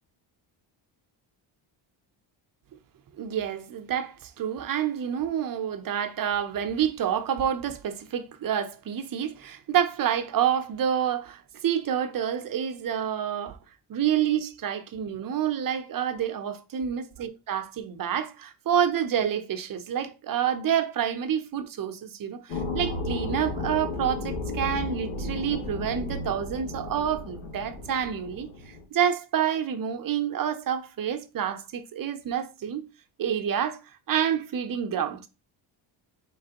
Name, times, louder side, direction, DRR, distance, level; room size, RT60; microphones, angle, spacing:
voice 1, 3.2-13.6 13.9-28.5 28.9-32.8 33.2-33.8 34.1-35.3, right 9 dB, 40° right, 0.8 m, -28 dB
sound 1, 22.5-28.8, left 2 dB, 85° left, 2.3 m, -34 dB
4.7 x 3.3 x 2.9 m
cardioid pair, 100°, 49 cm